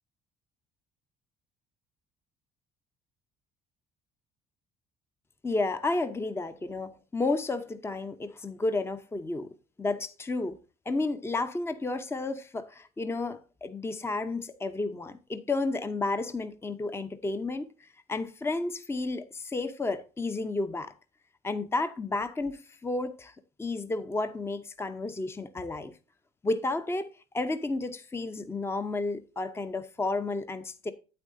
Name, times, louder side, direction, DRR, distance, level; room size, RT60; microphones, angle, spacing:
voice 1, 5.4-9.5 9.8-10.6 10.9-20.9 21.4-23.3 23.6-25.9 26.4-27.1 27.3-30.9, left 3 dB, 15° left, 0.7 m, -32 dB
8.9 x 8.7 x 2.6 m
cardioid pair, 110°, 17 cm